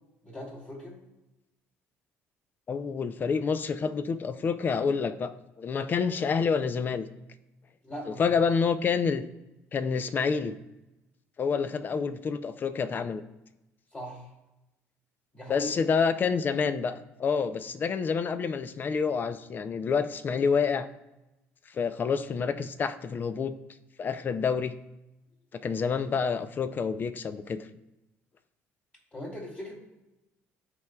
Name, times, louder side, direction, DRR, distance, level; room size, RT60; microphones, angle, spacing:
voice 1, 0.2-1.0 7.8-8.2 13.9-14.3 15.3-15.7 29.1-29.7, left 1 dB, 20° left, -1 dB, 2.5 m, -39 dB
voice 2, 2.7-5.3 5.6-7.0 8.1-9.3 9.7-10.5 11.4-13.2 15.5-20.9 21.7-23.6 24.0-24.7 25.5-27.7, left 5 dB, 35° left, 12 dB, 0.5 m, -28 dB
13.0 x 4.5 x 2.3 m, 0.97 s
cardioid pair, 105°, 5 cm